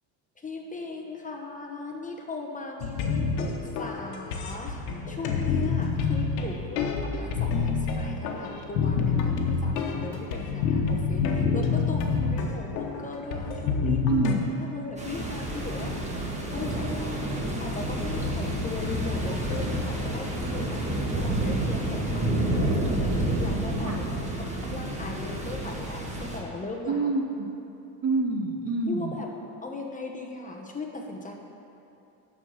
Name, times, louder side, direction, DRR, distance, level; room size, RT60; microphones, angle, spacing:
voice 1, 0.4-14.3 14.6-15.9 16.2-17.2 17.6-24.1 24.4-27.1 28.9-29.3 29.6-31.3, left 3 dB, 15° left, 1 dB, 1.0 m, -38 dB
sound 1, 2.8-14.4, left 5 dB, 90° left, 1.2 m, -27 dB
voice 2, 14.1-14.6 23.8-24.0 26.9-27.5 28.0-29.2, right 3 dB, 30° right, 2 dB, 0.8 m, -27 dB
sound 2, 15.0-26.4, right 1 dB, 15° right, 1.6 m, -29 dB
12.0 x 4.4 x 6.3 m, 2.8 s
supercardioid pair, 100°, 50 cm